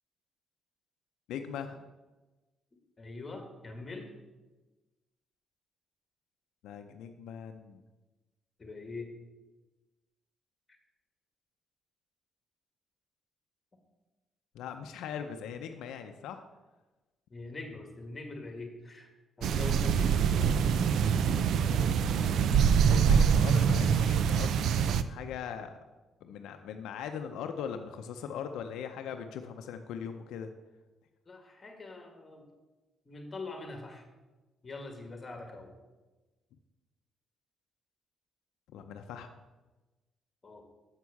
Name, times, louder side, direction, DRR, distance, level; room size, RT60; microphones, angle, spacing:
voice 1, 1.3-1.8 6.6-7.8 14.5-16.4 22.9-25.8 26.2-30.5 38.7-39.3, left 7 dB, 85° left, 6 dB, 0.6 m, -40 dB
voice 2, 3.0-4.1 8.6-9.1 17.3-19.1 19.4-20.3 31.3-32.5 33.1-34.1 34.6-35.7 40.4-40.6, left 3 dB, 30° left, 4 dB, 2.0 m, -43 dB
sound 1, 19.4-25.0, right 7 dB, 75° right, 0.4 m, -25 dB
7.4 x 6.2 x 7.0 m, 1.2 s
cardioid pair, 90°, 0 cm